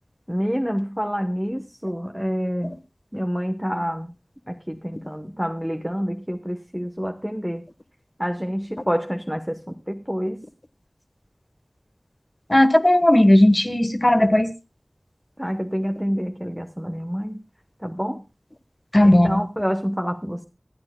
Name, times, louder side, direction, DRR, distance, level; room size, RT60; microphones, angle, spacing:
voice 1, 0.3-2.7 3.1-4.1 4.5-7.6 8.2-10.4 15.4-17.4 17.8-18.2 19.0-20.4, equal, 5° right, 6 dB, 1.0 m, -27 dB
voice 2, 12.5-14.5 18.9-19.4, left 1 dB, 35° left, 11 dB, 1.2 m, -16 dB
25.5 x 9.7 x 2.2 m, 0.27 s
wide cardioid pair, 45°, 0 cm